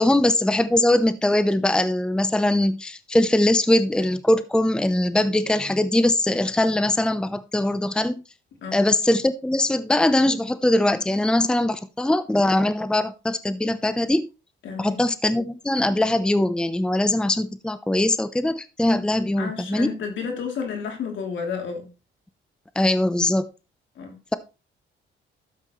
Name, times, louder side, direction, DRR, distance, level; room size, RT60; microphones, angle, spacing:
voice 1, 0.0-8.2 8.7-14.3 14.8-19.9 22.8-23.5, left 1 dB, 5° left, 0.7 m, -21 dB
voice 2, 14.6-15.0 19.4-21.9 24.0-24.2, left 6 dB, 70° left, 3.1 m, -31 dB
12.5 x 7.4 x 3.1 m
cardioid pair, 90°, 20 cm